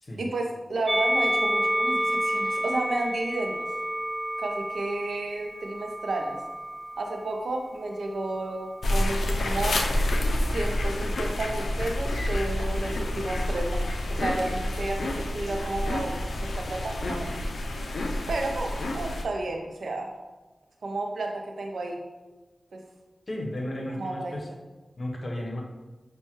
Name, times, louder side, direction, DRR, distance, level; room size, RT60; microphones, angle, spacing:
voice 1, 0.2-3.7 4.4-6.4 7.0-9.8 10.5-17.3 18.3-20.1 20.8-22.0 22.7-22.8 24.0-24.4, right 2 dB, 85° right, 3 dB, 0.5 m, -32 dB
Musical instrument, 0.9-7.3 8.1-9.1, equal, 25° right, 0.3 m, -30 dB
sound 1, 8.8-19.2, left 1 dB, 85° left, 0.3 m, -28 dB
voice 2, 23.3-24.5 25.0-25.6, left 1 dB, 55° left, 0 dB, 0.8 m, -33 dB
5.4 x 2.2 x 2.9 m, 1.2 s
cardioid pair, 45°, 0 cm